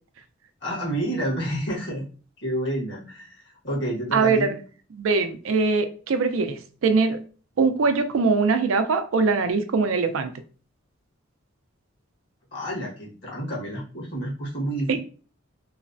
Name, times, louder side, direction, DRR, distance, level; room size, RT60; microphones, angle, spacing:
voice 1, 0.6-2.0 2.4-4.5 12.5-15.0, right 1 dB, 60° left, -5 dB, 1.3 m, -29 dB
voice 2, 4.1-4.6 4.9-7.2 7.6-10.3 14.9-15.0, right 4 dB, 85° right, 9 dB, 0.4 m, -22 dB
3.1 x 2.0 x 2.5 m, 0.39 s
head